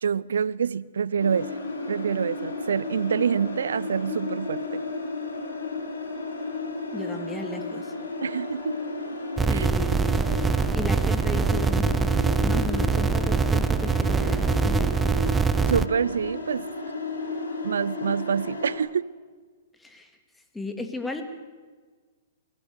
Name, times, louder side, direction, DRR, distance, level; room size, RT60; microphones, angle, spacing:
voice 1, 0.0-1.5 1.9-4.8 8.2-8.8 9.5-9.7 15.7-16.7 17.6-19.1, right 7 dB, 80° right, 0.5 m, -26 dB
sound 1, 1.2-18.8, left 3 dB, 85° left, 6.3 m, -33 dB
voice 2, 6.9-7.9 9.5-10.1 10.7-12.1 12.4-15.1 19.8-20.1 20.5-21.2, left 2 dB, 5° left, 2.5 m, -35 dB
sound 2, 9.4-15.9, right 5 dB, 10° right, 0.5 m, -23 dB
22.5 x 16.5 x 8.1 m
hypercardioid pair, 125°, 0 cm